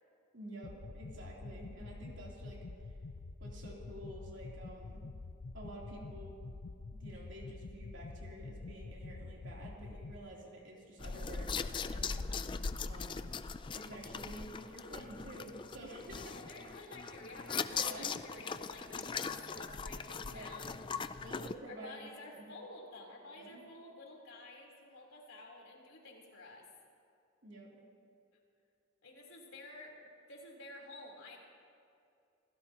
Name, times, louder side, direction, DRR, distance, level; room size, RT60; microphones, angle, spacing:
voice 1, 0.3-2.6 3.4-5.0 5.5-6.4 6.9-11.6 11.9-12.5 12.9-13.3 13.7-16.6 17.7-18.1 20.2-20.5 21.2-22.0 22.3-22.5 23.4-23.6 27.4-27.7, right 1 dB, 65° right, -3 dB, 3.3 m, -50 dB
sound 1, 0.6-10.2, left 3 dB, 65° left, 0.6 m, -47 dB
sound 2, 11.0-21.5, left 5 dB, 25° left, 0.3 m, -40 dB
voice 2, 16.3-20.8 21.7-26.7 29.0-31.4, left 2 dB, 85° left, -2 dB, 3.8 m, -51 dB
27.5 x 17.0 x 3.0 m, 2.5 s
head